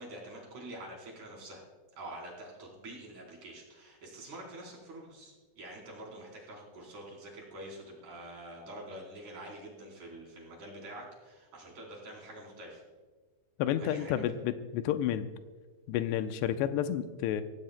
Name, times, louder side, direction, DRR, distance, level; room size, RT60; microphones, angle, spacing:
voice 1, 0.0-1.6 2.0-12.8 13.8-14.3, right 1 dB, 40° right, -3 dB, 4.8 m, -46 dB
voice 2, 13.6-15.3 15.9-17.4, left 10 dB, 85° left, 9 dB, 2.4 m, -30 dB
24.5 x 16.5 x 2.2 m, 1.3 s
omnidirectional pair, 5.6 m